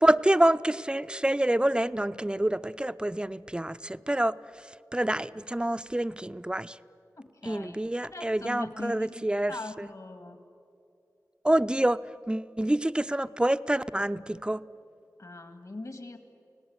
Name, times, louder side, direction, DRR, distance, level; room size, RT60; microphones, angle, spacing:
voice 1, 0.0-4.3 4.9-6.8 7.4-9.9 11.4-12.0 12.3-14.6, right 1 dB, 15° right, 13 dB, 0.5 m, -27 dB
voice 2, 7.2-10.4 15.2-16.2, left 2 dB, 55° left, 8 dB, 2.1 m, -41 dB
29.5 x 17.5 x 8.0 m, 2.6 s
wide cardioid pair, 45°, 7 cm